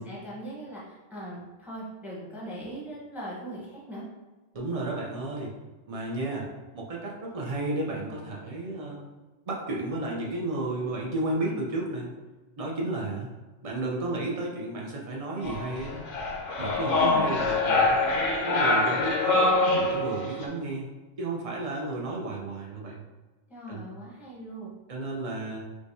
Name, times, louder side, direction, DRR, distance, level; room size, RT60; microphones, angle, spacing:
voice 1, 0.0-4.0 16.8-17.4 23.5-24.7, right 1 dB, ahead, -6 dB, 0.8 m, -39 dB
voice 2, 4.5-5.6 5.9-9.1 9.5-12.1 12.6-13.3 13.6-16.0 16.6-18.0 18.4-20.9 21.2-23.1 23.7-23.9 24.9-25.6, right 2 dB, 40° right, -3 dB, 0.6 m, -32 dB
sound 1, 15.4-20.4, left 2 dB, 65° left, 0.8 m, -25 dB
4.6 x 2.2 x 2.6 m, 1.2 s
omnidirectional pair, 1.2 m